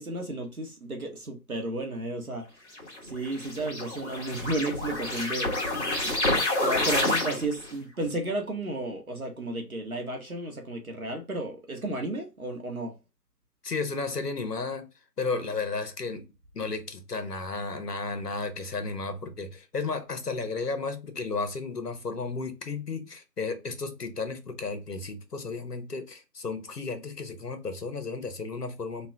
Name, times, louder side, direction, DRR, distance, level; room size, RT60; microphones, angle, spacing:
voice 1, 0.0-2.4 3.0-5.5 6.0-6.2 6.6-12.9, right 2 dB, 60° right, 0.9 m, -33 dB
sound 1, 2.8-7.7, left 1 dB, 40° left, 1.2 m, -28 dB
voice 2, 13.6-14.9 15.2-16.2 16.5-29.1, left 4 dB, 70° left, 1.0 m, -33 dB
3.1 x 2.2 x 3.5 m
figure-of-eight pair, 175°, 50 cm